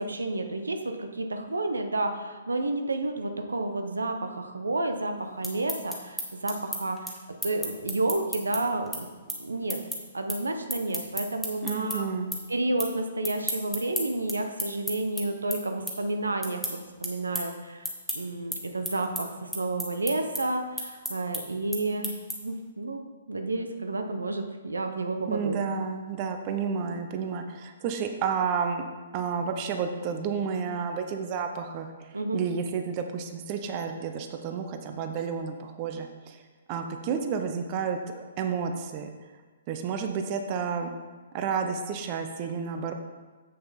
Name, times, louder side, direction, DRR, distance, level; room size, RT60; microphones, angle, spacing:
voice 1, 0.0-7.1 7.4-9.1 9.4-9.8 10.1-12.1 12.5-22.1 22.4-25.6 32.1-32.4, right 2 dB, 80° right, 6 dB, 0.8 m, -30 dB
sound 1, 5.2-12.0 12.3-12.9 13.2-22.6, equal, ahead, 1.3 m, -34 dB
voice 2, 11.6-12.4 25.3-28.9 29.1-31.9 32.3-36.4 36.7-39.1 39.7-40.9 41.3-42.9, right 6 dB, 35° right, 6 dB, 0.7 m, -31 dB
7.8 x 6.5 x 4.2 m, 1.3 s
figure-of-eight pair, 125°, 0 cm